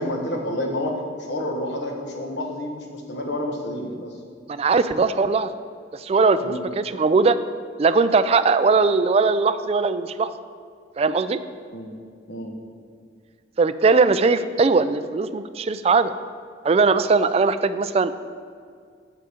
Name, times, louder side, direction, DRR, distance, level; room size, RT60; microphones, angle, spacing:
voice 1, 0.0-4.1 6.4-6.6 11.7-11.9 12.3-12.5, left 1 dB, 75° left, 1 dB, 1.4 m, -29 dB
voice 2, 4.5-5.5 5.9-7.4 7.8-10.3 11.0-11.4 13.6-16.1 16.6-18.1, right 4 dB, 35° right, 11 dB, 0.3 m, -20 dB
9.1 x 5.0 x 7.0 m, 2.1 s
head